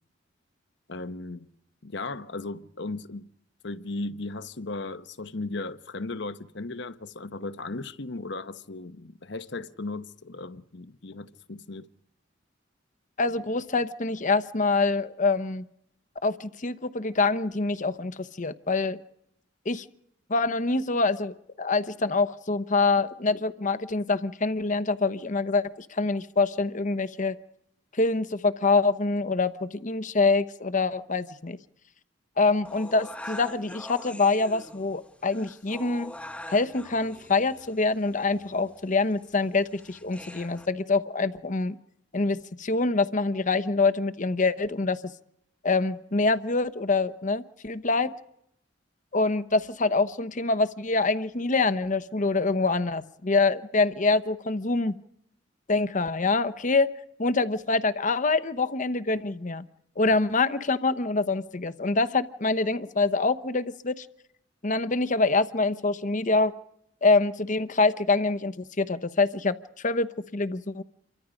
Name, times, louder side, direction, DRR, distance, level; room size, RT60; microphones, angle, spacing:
voice 1, 0.9-1.5 1.8-3.3 3.6-11.9, left 2 dB, 65° left, 1.0 m, -36 dB
voice 2, 13.2-15.7 16.2-19.0 19.6-19.8 20.3-27.4 27.9-31.6 32.4-36.1 36.5-41.8 42.1-45.0 45.6-48.1 49.1-55.0 55.7-56.9 57.2-59.7 60.0-64.1 64.6-66.5 67.0-69.6 69.8-70.8, left 3 dB, 40° left, 1.0 m, -25 dB
sound 1, 32.6-40.7, left 1 dB, 5° left, 1.3 m, -44 dB
28.5 x 24.0 x 5.1 m
head